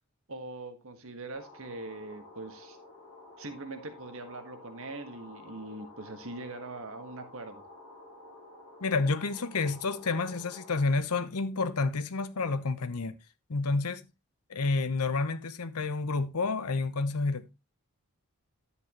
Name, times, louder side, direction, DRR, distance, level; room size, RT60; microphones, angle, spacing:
voice 1, 0.3-2.8 3.4-7.6, right 2 dB, 65° right, 1.6 m, -42 dB
sound 1, 1.3-10.8, left 2 dB, 25° left, 4.1 m, -51 dB
voice 2, 8.8-13.1 13.5-14.0 14.5-17.5, left 3 dB, 90° left, 0.8 m, -29 dB
10.5 x 8.0 x 3.0 m
head